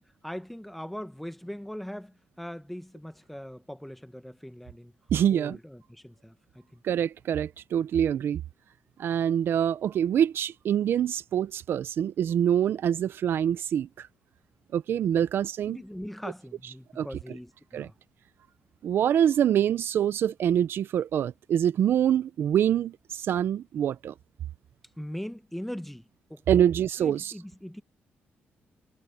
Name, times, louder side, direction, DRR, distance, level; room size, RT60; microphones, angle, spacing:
voice 1, 0.0-4.9 5.3-6.8 15.7-17.9 25.0-26.6 27.0-27.8, equal, 5° left, 1.3 m, -40 dB
voice 2, 5.1-5.6 6.8-8.4 9.0-14.1 14.7-15.8 17.0-17.1 17.7-17.9 18.8-24.1 26.5-27.3, right 9 dB, 70° right, 0.6 m, -25 dB
cardioid pair, 105°, 4 cm